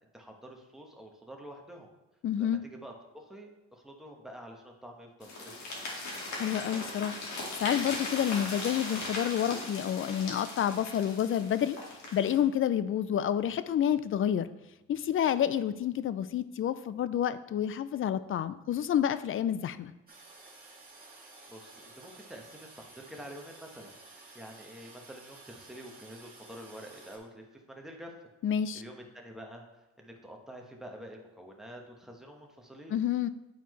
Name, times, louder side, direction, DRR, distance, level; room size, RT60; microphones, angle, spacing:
voice 1, 0.1-1.9 2.4-5.9 21.5-28.3 28.7-33.0, equal, ahead, 1 dB, 1.2 m, -48 dB
voice 2, 2.2-2.6 6.3-7.2 7.6-11.8 12.1-14.5 14.9-19.9 28.4-28.8 32.9-33.3, left 9 dB, 45° left, 15 dB, 0.4 m, -29 dB
sound 1, 5.2-12.4, left 2 dB, 65° left, 2.0 m, -39 dB
Toilet flush, 20.1-27.2, right 3 dB, 30° right, 1.9 m, -53 dB
9.2 x 4.3 x 3.1 m, 1.0 s
cardioid pair, 90°, 30 cm